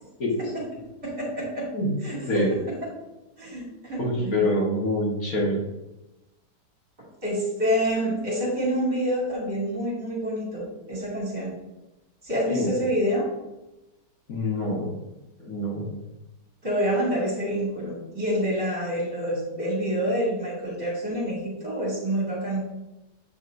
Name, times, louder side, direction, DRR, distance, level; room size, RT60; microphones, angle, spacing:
voice 1, 0.4-1.7 2.0-2.8 3.4-4.5 7.0-11.5 12.2-13.3 16.6-22.6, equal, 35° right, -6 dB, 2.8 m, -27 dB
voice 2, 4.0-5.6 12.5-12.7 14.3-14.9 15.4-16.0, left 1 dB, 55° left, -3 dB, 1.8 m, -26 dB
8.2 x 6.2 x 2.6 m, 1.0 s
omnidirectional pair, 1.8 m